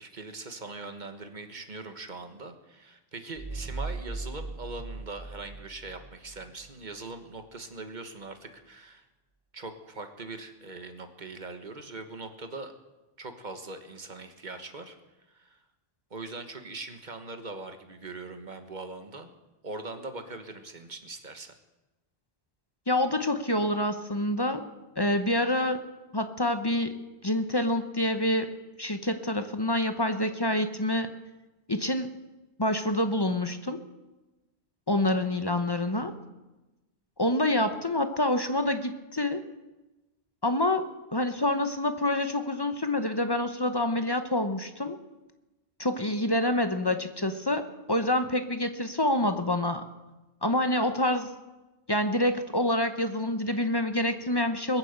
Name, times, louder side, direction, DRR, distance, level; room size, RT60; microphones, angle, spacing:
voice 1, 0.0-9.0 9.5-12.7 13.2-15.0 15.3-15.6 16.1-19.3 19.6-21.5, right 3 dB, 45° right, 7 dB, 1.4 m, -41 dB
sound 1, 3.4-6.7, right 3 dB, 20° right, 0.6 m, -38 dB
voice 2, 22.9-24.6 25.0-25.8 26.1-27.0 27.2-28.5 28.8-31.1 31.7-32.1 32.6-33.8 34.9-36.1 37.2-39.4 40.4-40.9 41.1-45.0 45.8-49.8 50.4-51.3 51.9-54.8, left 1 dB, 25° left, 8 dB, 0.8 m, -27 dB
21.0 x 7.8 x 8.1 m, 1.1 s
omnidirectional pair, 1.2 m